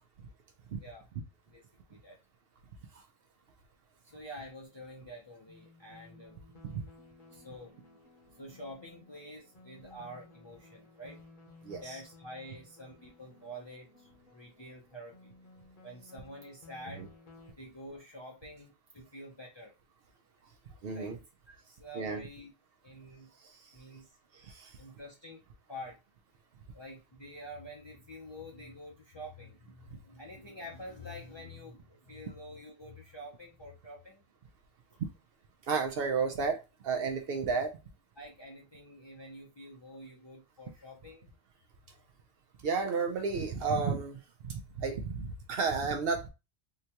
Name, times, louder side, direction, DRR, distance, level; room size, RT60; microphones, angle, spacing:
voice 1, 4.0-6.4 7.3-7.7 8.3-11.2 11.8-15.3 15.8-17.0 17.6-19.7 20.9-21.1 21.5-22.5 22.8-23.3 23.7-24.1 24.8-25.4 25.7-26.0 26.7-34.2 34.9-35.0 38.2-41.3, equal, 30° left, 0.6 m, -47 dB
sound 1, 5.5-17.5, left 3 dB, 50° left, 1.0 m, -57 dB
voice 2, 11.6-12.0 17.0-17.1 20.8-21.2 21.9-22.2 23.3-23.8 24.3-24.8 35.6-37.8 42.6-46.3, right 5 dB, 70° right, 0.7 m, -33 dB
3.8 x 2.2 x 2.8 m
omnidirectional pair, 1.1 m